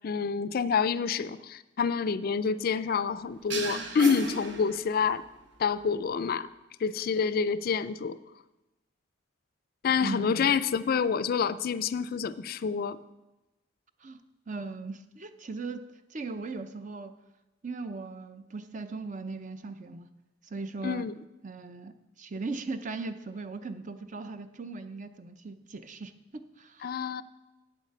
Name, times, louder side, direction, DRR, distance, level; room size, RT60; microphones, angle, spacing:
voice 1, 0.0-5.2 5.6-6.5 6.8-8.2 9.8-13.0 20.8-21.1 26.8-27.2, left 6 dB, 55° left, 0.4 m, -28 dB
sound 1, 3.5-5.3, right 2 dB, 70° right, 1.3 m, -35 dB
voice 2, 10.0-10.5 14.0-14.2 14.5-15.8 16.1-17.2 17.6-20.1 20.4-21.1 21.4-26.9, right 3 dB, 45° right, 0.6 m, -38 dB
8.6 x 8.2 x 6.6 m
head